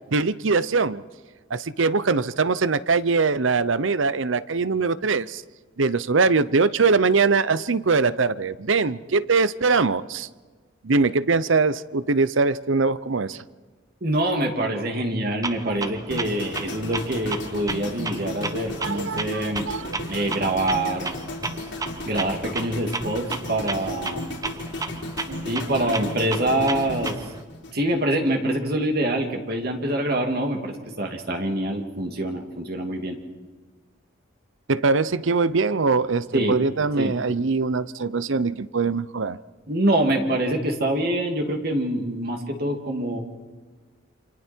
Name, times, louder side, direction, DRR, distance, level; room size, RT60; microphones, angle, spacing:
voice 1, 0.1-1.0 1.5-5.4 5.8-10.3 10.8-13.4 18.8-20.0 25.3-25.7 34.7-39.4, right 4 dB, 80° right, 0.8 m, -22 dB
voice 2, 14.0-19.7 20.1-21.1 22.0-24.3 25.4-27.2 27.7-33.2 36.3-36.6 37.0-37.1 39.7-43.2, right 1 dB, 50° right, 2.8 m, -25 dB
Clock, 15.4-27.4, right 3 dB, 20° right, 1.0 m, -34 dB
sound 1, 16.1-28.3 28.6-28.9, left 1 dB, 65° left, 3.9 m, -35 dB
28.5 x 27.5 x 4.6 m
head